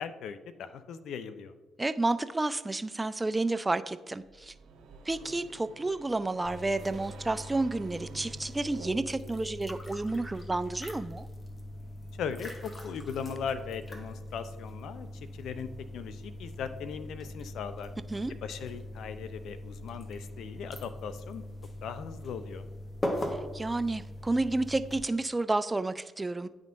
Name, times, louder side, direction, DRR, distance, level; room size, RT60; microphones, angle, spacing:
voice 1, 0.0-1.5 12.2-17.9 18.4-21.4 21.8-22.7, left 7 dB, 70° left, 11 dB, 0.4 m, -39 dB
voice 2, 1.8-4.5 5.1-11.3 18.1-18.3 23.3-26.5, right 2 dB, 20° right, 12 dB, 0.3 m, -31 dB
sound 1, 4.2-9.5, right 4 dB, 80° right, 1.1 m, -50 dB
sound 2, 6.4-25.0, left 1 dB, 25° left, 1.1 m, -41 dB
10.5 x 3.6 x 2.5 m, 1.2 s
hypercardioid pair, 50°, 0 cm